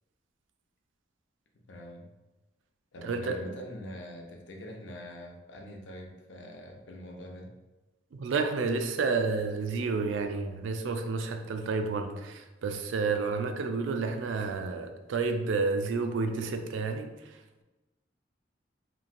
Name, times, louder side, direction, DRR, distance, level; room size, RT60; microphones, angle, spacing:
voice 1, 1.7-2.1 2.9-7.5, equal, 75° left, 2 dB, 0.5 m, -44 dB
voice 2, 3.0-3.4 8.1-17.6, right 4 dB, 80° right, 6 dB, 0.3 m, -30 dB
3.0 x 2.6 x 2.4 m, 1.1 s
head